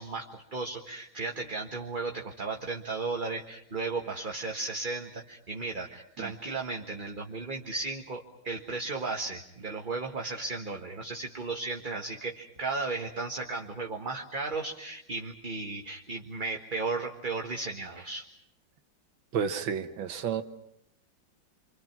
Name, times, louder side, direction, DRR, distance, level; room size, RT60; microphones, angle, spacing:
voice 1, 0.0-18.3, right 3 dB, 30° right, 2 dB, 1.5 m, -35 dB
voice 2, 19.3-20.4, right 7 dB, 90° right, 8 dB, 2.0 m, -31 dB
28.5 x 25.0 x 6.0 m, 0.75 s
omnidirectional pair, 2.1 m